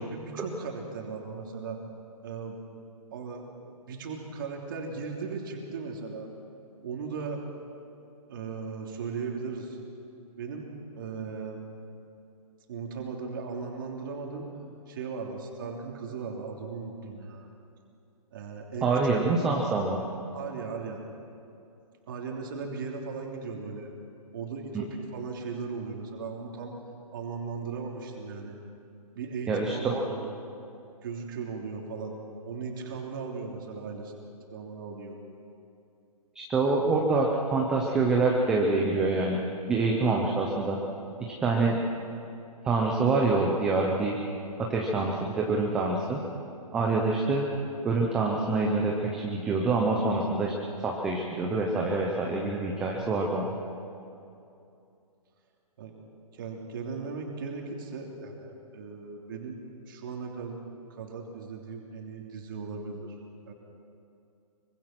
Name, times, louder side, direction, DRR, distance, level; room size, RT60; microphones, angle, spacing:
voice 1, 0.1-1.8 2.2-2.6 3.1-6.3 6.8-7.4 8.3-9.8 10.4-10.7 10.9-11.6 12.7-14.5 14.9-17.5 18.3-18.9 20.0-21.0 22.1-23.9 24.3-26.7 27.1-28.6 29.1-30.3 31.0-32.2 32.4-34.2 34.5-35.2 41.6-41.8 47.5-47.6 55.8-55.9 56.3-59.6 59.9-60.6 60.9-63.2 63.5-63.6, right 5 dB, 35° right, 1 dB, 3.1 m, -37 dB
voice 2, 18.8-20.0 29.5-30.0 36.3-39.4 39.7-40.8 41.4-41.8 42.6-44.2 44.7-46.2 46.7-47.5 47.8-50.5 50.8-53.5, right 3 dB, 5° right, -1 dB, 0.6 m, -26 dB
25.0 x 24.5 x 6.0 m, 2.6 s
hypercardioid pair, 175°, 20 cm